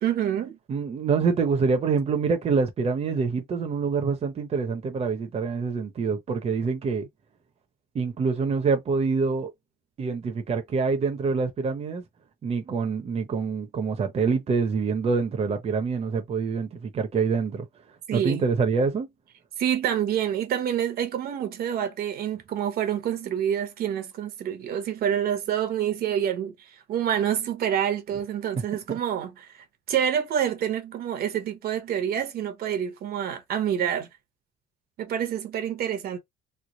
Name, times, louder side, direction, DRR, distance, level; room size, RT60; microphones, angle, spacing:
voice 1, 0.0-0.6 18.1-18.4 19.6-34.1 35.0-36.2, right 9 dB, 65° right, 1.0 m, -27 dB
voice 2, 0.7-7.1 7.9-9.5 10.0-12.0 12.4-17.7 18.1-19.1 28.9-29.0, right 5 dB, 35° right, 0.8 m, -26 dB
3.2 x 2.1 x 3.8 m
cardioid pair, 110°, 17 cm